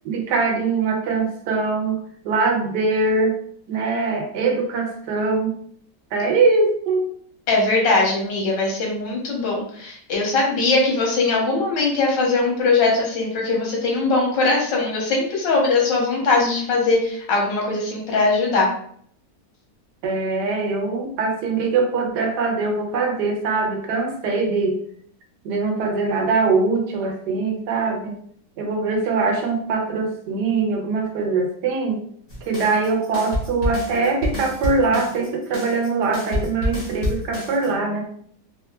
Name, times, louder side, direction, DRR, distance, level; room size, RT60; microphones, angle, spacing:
voice 1, 0.0-2.0 2.2-3.4 3.7-5.5 6.1-7.1 20.0-24.8 25.4-28.2 28.6-32.0 32.4-38.1, right 3 dB, 75° right, 2 dB, 1.1 m, -22 dB
voice 2, 7.5-18.7, left 3 dB, 90° left, -1 dB, 1.6 m, -20 dB
sound 1, 32.3-37.7, left 1 dB, 40° left, 0.3 m, -28 dB
3.6 x 2.2 x 2.2 m, 0.62 s
omnidirectional pair, 1.9 m